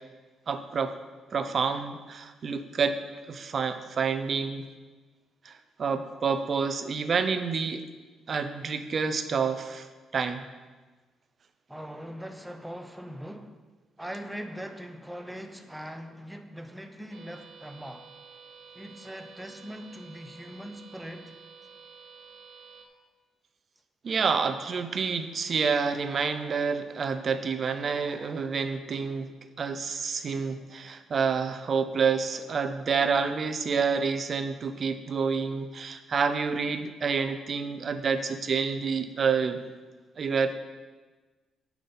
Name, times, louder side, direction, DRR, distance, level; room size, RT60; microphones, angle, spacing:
voice 1, 0.5-1.0 1.3-3.0 3.3-4.6 5.4-7.8 8.3-9.9 10.1-10.4 24.0-29.3 29.6-39.6 40.2-40.6, right 5 dB, 50° right, 9 dB, 0.7 m, -28 dB
voice 2, 11.7-13.6 14.0-18.1 18.7-21.4, equal, 5° right, 7 dB, 0.9 m, -41 dB
sound 1, 17.1-22.9, right 5 dB, 80° right, 1.3 m, -51 dB
9.0 x 6.0 x 5.5 m, 1.3 s
cardioid pair, 90°, 0 cm